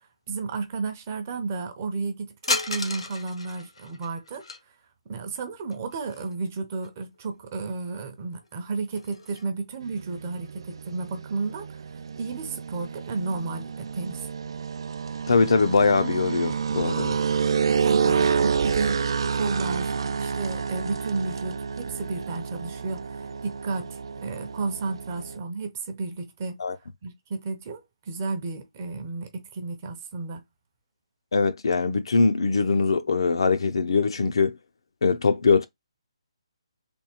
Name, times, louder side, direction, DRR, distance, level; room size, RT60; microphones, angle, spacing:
voice 1, 0.3-4.4 5.1-11.8 12.2-14.3 17.7-19.0 19.3-26.6 27.0-30.4, right 4 dB, 25° right, 0.7 m, -32 dB
sound 1, 2.4-4.6 5.7-6.5 6.8-6.9 7.9-8.0 8.4-9.5, left 3 dB, 80° left, 1.0 m, -33 dB
sound 2, 9.8-25.4, right 6 dB, 55° right, 0.3 m, -29 dB
voice 2, 15.3-17.2 26.6-26.8 31.3-34.6 35.0-35.7, left 4 dB, 60° left, 0.5 m, -22 dB
3.5 x 2.3 x 4.3 m
hypercardioid pair, 175°, 3 cm